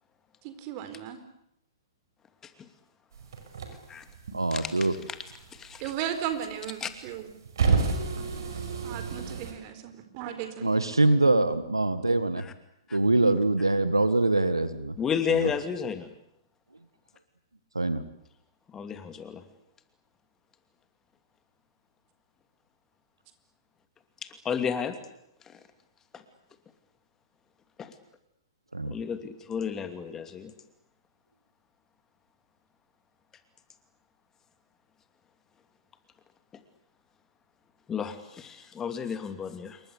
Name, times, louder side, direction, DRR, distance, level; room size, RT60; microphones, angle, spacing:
voice 1, 0.4-1.2 5.8-7.3 7.8-8.3 8.8-10.7 13.2-13.4, right 10 dB, 40° right, 9 dB, 4.4 m, -36 dB
sound 1, 3.1-4.9 5.1-6.5 6.9-9.5, right 5 dB, 65° right, 5.9 m, -29 dB
voice 2, 4.3-4.9 10.6-12.4 12.9-15.0 15.3-15.4 17.8-18.0 28.7-28.9, right 2 dB, 90° right, 13 dB, 1.8 m, -24 dB
voice 3, 5.5-5.8 6.8-6.9 12.9-13.0 15.0-16.1 18.7-19.4 24.4-25.0 25.5-25.6 26.1-26.2 27.8-27.9 28.9-30.5 37.9-39.8, left 7 dB, 20° left, 9 dB, 2.8 m, -32 dB
28.0 x 23.0 x 8.3 m, 0.76 s
figure-of-eight pair, 115°, 2 cm